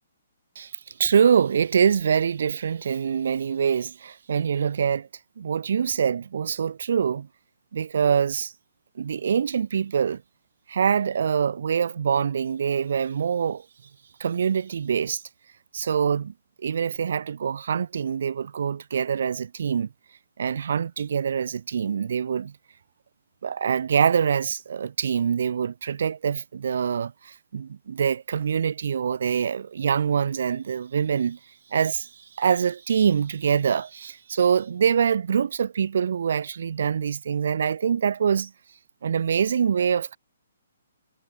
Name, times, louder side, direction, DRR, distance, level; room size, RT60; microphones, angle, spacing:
voice 1, 1.0-5.1 5.4-7.3 7.7-8.5 9.0-10.2 10.7-13.6 14.2-15.2 15.7-16.3 16.6-19.9 20.4-22.5 23.4-31.4 31.7-32.1 32.4-38.5 39.0-40.2, right 7 dB, 55° right, 3.4 m, -24 dB
figure-of-eight pair, 130°, 0 cm